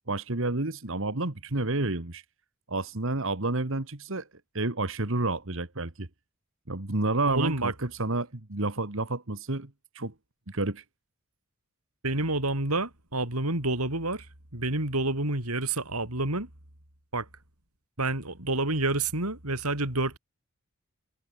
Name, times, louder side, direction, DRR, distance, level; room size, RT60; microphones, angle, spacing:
voice 1, 0.1-2.2 2.7-4.3 4.5-6.1 6.7-10.1 10.5-10.8, right 2 dB, 60° right, 1.8 m, -30 dB
voice 2, 7.3-7.7 12.0-14.3 14.5-16.5 17.1-17.3 18.0-20.2, right 2 dB, 90° right, 6.0 m, -28 dB
head